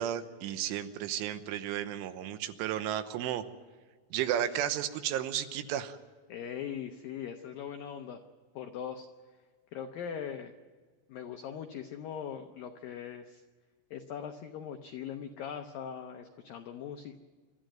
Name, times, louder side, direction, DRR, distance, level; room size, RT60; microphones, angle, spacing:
voice 1, 0.0-3.4 4.1-6.0, right 10 dB, 85° right, 11 dB, 3.4 m, -33 dB
voice 2, 6.3-8.2 8.5-9.1 9.7-10.5 11.1-13.4 13.9-17.2, left 8 dB, 85° left, 6 dB, 2.0 m, -40 dB
26.5 x 13.0 x 9.0 m, 1.5 s
omnidirectional pair, 5.7 m